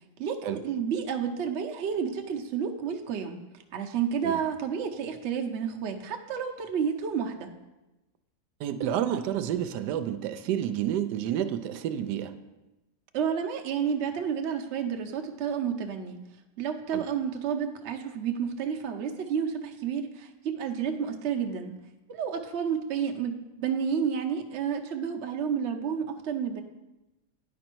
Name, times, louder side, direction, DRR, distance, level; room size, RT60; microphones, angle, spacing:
voice 1, 0.2-3.4 3.7-7.5 13.1-16.2 16.6-21.7 22.1-26.6, right 7 dB, 55° right, 3 dB, 0.9 m, -30 dB
voice 2, 8.6-12.3 16.9-17.1, right 10 dB, 90° right, 10 dB, 1.2 m, -30 dB
9.8 x 5.2 x 4.5 m, 1.0 s
omnidirectional pair, 1.8 m